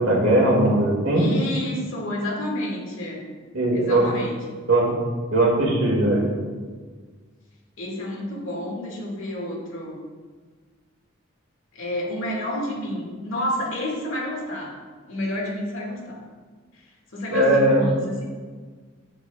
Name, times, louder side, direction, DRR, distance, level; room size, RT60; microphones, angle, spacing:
voice 1, 0.0-1.3 3.5-4.1 4.7-4.9 5.3-6.3 17.3-17.8, right 1 dB, 75° right, -2 dB, 2.2 m, -19 dB
voice 2, 1.1-3.2 3.7-4.4 7.8-10.0 11.7-14.7 15.1-16.2 16.7-16.8 17.1-18.2, left 1 dB, 80° left, -3 dB, 2.1 m, -30 dB
8.6 x 8.1 x 2.4 m, 1.5 s
head